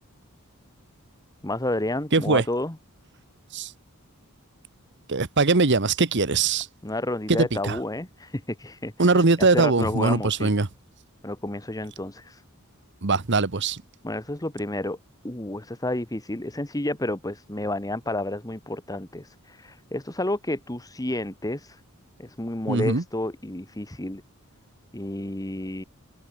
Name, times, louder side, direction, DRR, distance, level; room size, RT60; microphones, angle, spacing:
voice 1, 1.4-2.8 6.8-10.5 11.2-12.4 14.0-15.0 15.2-21.8 22.2-24.2 24.9-25.8, left 1 dB, 15° left, 1.4 m, -30 dB
voice 2, 2.1-2.4 3.5-3.7 5.1-6.7 7.3-7.8 9.0-10.7 13.0-13.8 22.7-23.0, right 3 dB, 55° right, 1.2 m, -21 dB
open air
head